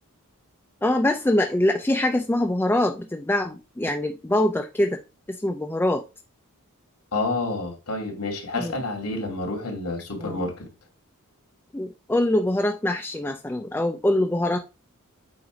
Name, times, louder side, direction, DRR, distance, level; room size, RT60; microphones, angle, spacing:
voice 1, 0.8-5.0 5.3-6.0 8.6-8.8 10.2-10.5 11.7-14.6, left 1 dB, 10° left, 0.5 m, -24 dB
voice 2, 7.1-10.7, left 2 dB, 80° left, 2.5 m, -29 dB
7.8 x 2.7 x 5.1 m
head